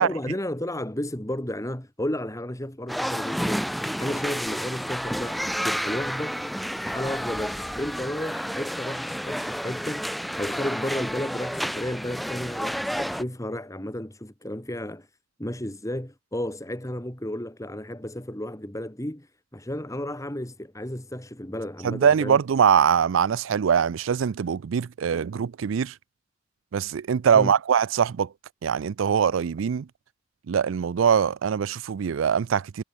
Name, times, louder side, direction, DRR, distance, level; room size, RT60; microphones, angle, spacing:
voice 1, 0.0-6.4 6.8-15.1 15.4-22.4 27.3-27.5, left 1 dB, 15° left, 2.8 m, -33 dB
sound 1, 2.9-13.2, equal, ahead, 2.6 m, -30 dB
voice 2, 21.8-25.9 26.7-28.3 28.6-29.9 30.5-32.8, right 7 dB, 80° right, 0.4 m, -22 dB
head